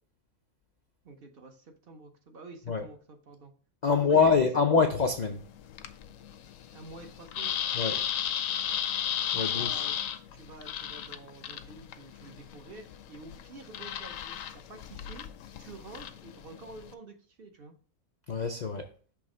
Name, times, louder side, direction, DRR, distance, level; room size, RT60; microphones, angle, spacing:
voice 1, 1.0-3.5 3.9-4.9 6.7-8.0 9.3-9.9 10.3-15.3 15.6-17.7, right 3 dB, 45° right, 4 dB, 0.9 m, -49 dB
voice 2, 3.8-5.4 7.7-7.9 9.3-9.7 18.3-18.9, left 5 dB, 85° left, 4 dB, 0.3 m, -25 dB
sound 1, 5.0-16.9, left 10 dB, 70° left, 0.9 m, -35 dB
6.2 x 3.1 x 4.9 m, 0.41 s
omnidirectional pair, 1.5 m